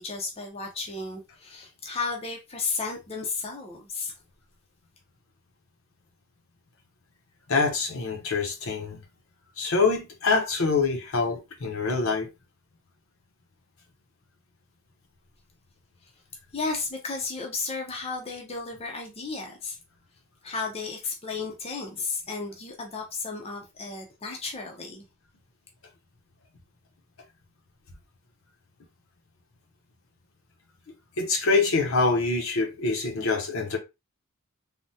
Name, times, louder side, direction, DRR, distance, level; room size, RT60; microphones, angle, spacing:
voice 1, 0.0-4.1 16.5-19.8 20.4-25.0, left 4 dB, 30° left, 0.5 m, -33 dB
voice 2, 7.5-9.0 9.6-12.3 31.2-33.8, left 4 dB, 65° left, 0.8 m, -25 dB
3.4 x 2.1 x 2.7 m
head